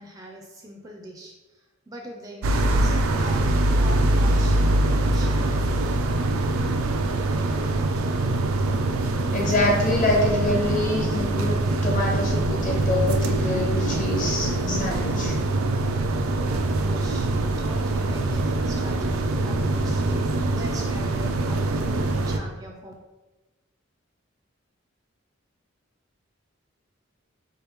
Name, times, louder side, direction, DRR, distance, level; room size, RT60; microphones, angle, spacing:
voice 1, 0.0-1.3 1.9-3.5 3.8-4.6 5.0-5.9 16.3-22.9, right 1 dB, 15° right, 0 dB, 0.4 m, -41 dB
sound 1, 2.4-22.4, right 2 dB, 90° right, 0.4 m, -23 dB
voice 2, 9.3-15.4, left 2 dB, 40° left, -2 dB, 0.9 m, -26 dB
sound 2, 12.8-16.4, left 2 dB, 65° left, 0.5 m, -35 dB
4.2 x 3.0 x 3.5 m, 1.2 s
head